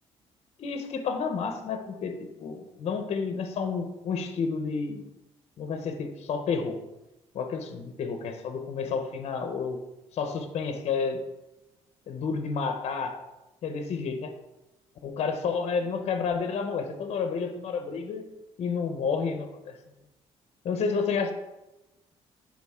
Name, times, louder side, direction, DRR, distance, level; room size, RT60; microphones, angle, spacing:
voice 1, 0.6-5.0 5.6-6.8 7.3-9.8 10.1-11.2 12.1-13.2 13.6-14.3 15.0-18.3 18.6-19.8 20.6-21.3, left 5 dB, 60° left, 7 dB, 0.9 m, -30 dB
10.5 x 3.8 x 3.7 m, 0.97 s
cardioid pair, 95°, 12 cm